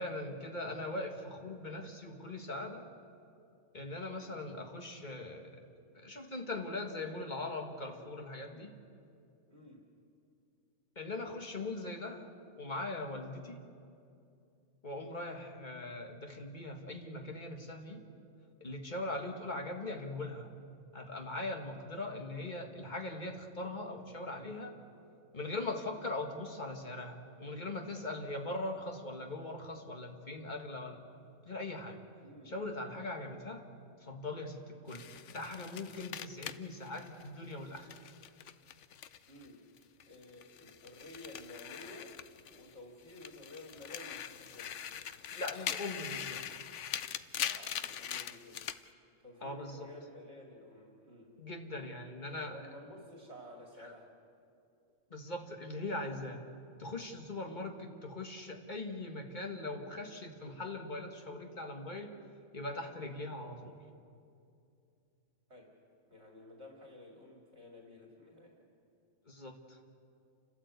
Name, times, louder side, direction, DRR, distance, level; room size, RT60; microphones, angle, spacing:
voice 1, 0.0-2.9 3.7-5.6 5.9-8.7 11.0-12.3 12.6-13.6 14.8-18.0 18.6-20.5 20.9-24.8 25.3-31.0 31.4-32.0 32.5-33.6 34.0-38.0 45.2-46.7 49.4-49.9 51.4-52.6 53.8-53.9 55.1-56.4 56.8-62.1 62.5-63.8 69.3-69.8, left 2 dB, 35° left, 3 dB, 1.8 m, -41 dB
voice 2, 9.5-9.8 32.2-32.5 39.3-39.6 40.1-42.1 42.4-44.8 47.4-48.6 49.2-51.4 52.4-54.1 65.5-65.7 66.1-68.6, left 1 dB, 55° right, 0 dB, 2.8 m, -52 dB
sound 1, 34.9-39.5 39.8-42.7 43.1-48.8, left 9 dB, 65° left, 1.0 m, -42 dB
29.5 x 12.5 x 8.2 m, 2.5 s
omnidirectional pair, 1.4 m